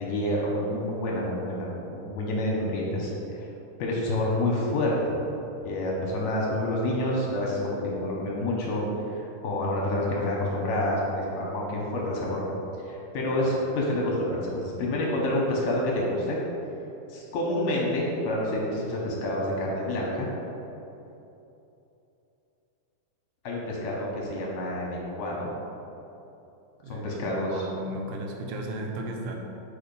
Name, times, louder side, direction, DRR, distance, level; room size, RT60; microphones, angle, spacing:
voice 1, 0.0-3.5 3.8-5.3 5.6-8.8 9.1-12.6 12.8-16.4 17.1-20.3 23.4-25.5 26.9-27.7, left 1 dB, 70° left, -3 dB, 1.9 m, -28 dB
voice 2, 26.8-29.4, right 1 dB, 90° right, 1 dB, 2.3 m, -35 dB
4.9 x 4.8 x 5.2 m, 2.9 s
omnidirectional pair, 3.6 m